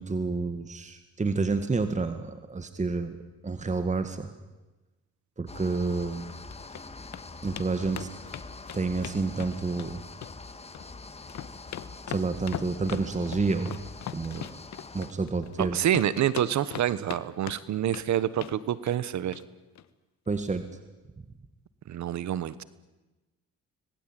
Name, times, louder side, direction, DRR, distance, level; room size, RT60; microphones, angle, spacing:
voice 1, 0.0-3.2 3.4-4.3 5.4-6.3 7.4-8.1 8.7-10.0 12.1-13.8 14.1-14.5 14.9-15.8 20.3-20.6, right 3 dB, 25° right, 9 dB, 1.9 m, -29 dB
sound 1, 5.5-15.1, left 3 dB, 20° left, 1.7 m, -44 dB
sound 2, 6.3-6.8 7.1-7.2 7.6-7.7 7.9-9.9 10.2-10.9 11.2-15.6 15.9-17.2 17.5-18.1 18.4-18.6 18.9-19.0 19.3-19.4 19.7-19.8, left 10 dB, 65° left, 1.4 m, -39 dB
voice 2, 15.6-19.4 21.9-22.6, right 11 dB, 70° right, 17 dB, 1.2 m, -27 dB
26.0 x 20.0 x 9.2 m, 1.1 s
cardioid pair, 90°, 30 cm